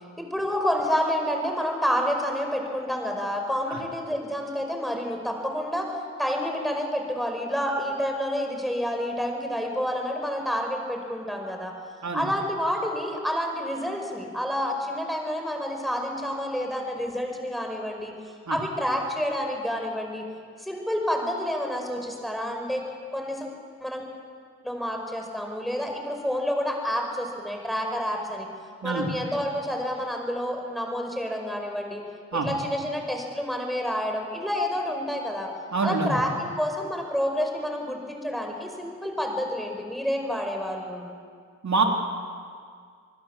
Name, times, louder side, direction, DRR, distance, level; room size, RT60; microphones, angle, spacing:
voice 1, 0.2-11.7 12.1-18.1 18.5-20.2 20.6-22.8 23.1-23.5 23.8-24.0 24.6-28.5 28.8-32.0 32.3-35.5 35.8-41.0, equal, ahead, 2 dB, 5.4 m, -29 dB
voice 2, 35.7-36.2 41.6-41.8, right 4 dB, 70° right, 1 dB, 3.3 m, -25 dB
28.0 x 20.0 x 7.4 m, 2.1 s
wide cardioid pair, 75°, 30 cm